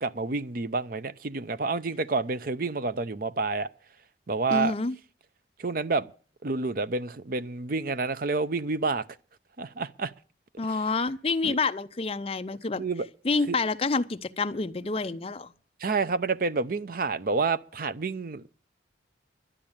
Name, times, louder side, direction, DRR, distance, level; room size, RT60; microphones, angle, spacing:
voice 1, 0.0-3.7 4.3-4.7 5.6-6.1 6.4-9.0 9.6-10.1 11.4-11.6 12.8-13.1 13.5-13.6 15.8-18.5, right 4 dB, 50° right, 0.6 m, -29 dB
voice 2, 4.5-4.9 10.6-12.8 13.2-15.5, left 3 dB, 30° left, 0.6 m, -28 dB
12.0 x 8.7 x 8.8 m
head